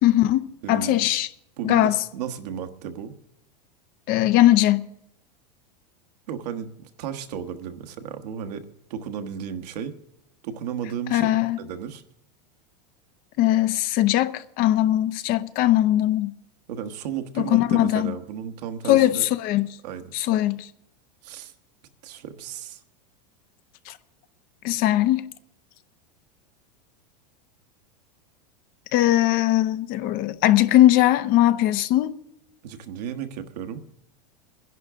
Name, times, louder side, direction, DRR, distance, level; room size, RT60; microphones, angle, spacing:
voice 1, 0.0-1.3 1.6-2.0 4.1-4.9 11.1-11.6 13.4-16.3 17.4-18.1 18.9-19.7 20.1-20.7 23.9-24.0 24.6-25.3 28.9-32.2, left 14 dB, 45° left, 0.7 m, -20 dB
voice 2, 0.6-1.1 1.6-3.1 6.3-8.6 8.9-9.9 10.4-12.0 16.7-19.2 19.8-20.1 21.2-21.5 22.0-22.8 32.6-33.8, right 8 dB, 70° right, 1.3 m, -34 dB
23.0 x 11.0 x 3.6 m
supercardioid pair, 125°, 21 cm